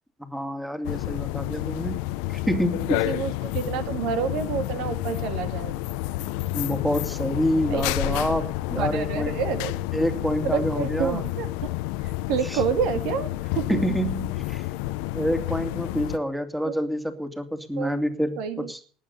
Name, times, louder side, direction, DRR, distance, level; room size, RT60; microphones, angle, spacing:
voice 1, 0.2-2.0 2.3-3.1 6.5-9.3 9.9-11.2 12.5-12.6 13.7-14.6 15.1-18.8, equal, 5° right, 8 dB, 2.5 m, -27 dB
sound 1, 0.8-16.2, left 17 dB, 80° left, 0.7 m, -30 dB
voice 2, 2.9-5.9 7.7-8.2 8.8-9.7 10.4-11.5 12.0-13.3 13.6-13.7 16.6-16.7 17.8-18.0 18.4-18.7, right 7 dB, 75° right, 9 dB, 2.0 m, -28 dB
19.0 x 9.0 x 6.7 m, 0.43 s
supercardioid pair, 100°, 0 cm